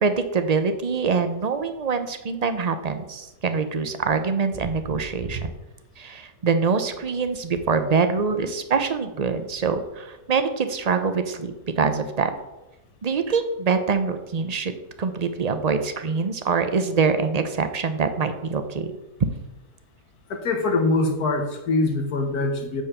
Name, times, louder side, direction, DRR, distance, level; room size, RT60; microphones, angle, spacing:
voice 1, 0.0-5.5 6.0-12.3 13.0-14.7 15.0-18.9, right 5 dB, 45° right, 9 dB, 0.5 m, -24 dB
voice 2, 20.3-22.8, left 3 dB, 80° left, 4 dB, 1.8 m, -23 dB
8.4 x 4.6 x 6.7 m, 1.0 s
omnidirectional pair, 1.6 m